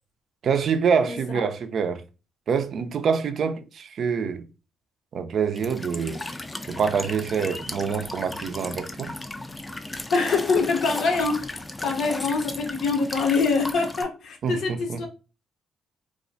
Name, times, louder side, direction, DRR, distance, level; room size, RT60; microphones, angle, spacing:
voice 1, 0.4-2.0 2.5-4.4 5.1-6.2 6.7-9.1 14.4-15.1, right 6 dB, 60° right, 0.3 m, -26 dB
Walk footsteps / Chirp tweet / Stream, 5.6-14.0, left 2 dB, 20° left, 0.4 m, -35 dB
voice 2, 10.1-11.6 11.8-15.1, left 4 dB, 70° left, 0.6 m, -24 dB
2.3 x 2.1 x 2.6 m
supercardioid pair, 60°, 0 cm